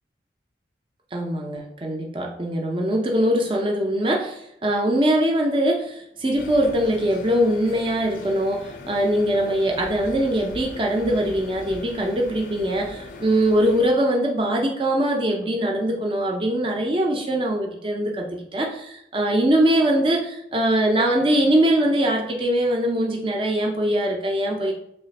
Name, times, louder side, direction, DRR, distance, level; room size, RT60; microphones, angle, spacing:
voice 1, 1.1-24.7, right 1 dB, 30° right, 0 dB, 0.4 m, -22 dB
sound 1, 6.4-13.9, left 3 dB, 45° left, 0.4 m, -40 dB
3.2 x 2.4 x 3.9 m, 0.76 s
head